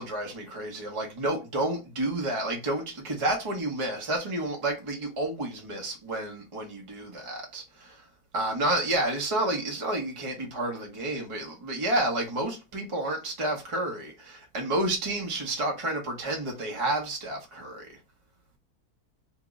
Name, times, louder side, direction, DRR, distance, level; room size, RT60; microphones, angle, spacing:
voice 1, 0.0-8.0 8.3-17.9, right 1 dB, 40° right, 0.4 m, -30 dB
2.8 x 2.0 x 3.5 m
omnidirectional pair, 1.6 m